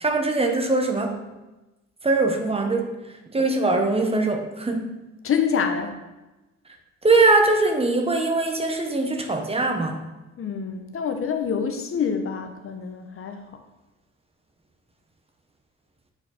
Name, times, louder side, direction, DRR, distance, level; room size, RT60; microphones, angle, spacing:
voice 1, 0.0-1.2 2.0-3.0 3.3-5.0 7.0-10.0, right 3 dB, 20° right, 4 dB, 0.9 m, -22 dB
voice 2, 5.2-6.0 10.4-13.5, left 6 dB, 45° left, 6 dB, 0.7 m, -26 dB
7.1 x 4.2 x 4.1 m, 1.1 s
cardioid pair, 90°, 30 cm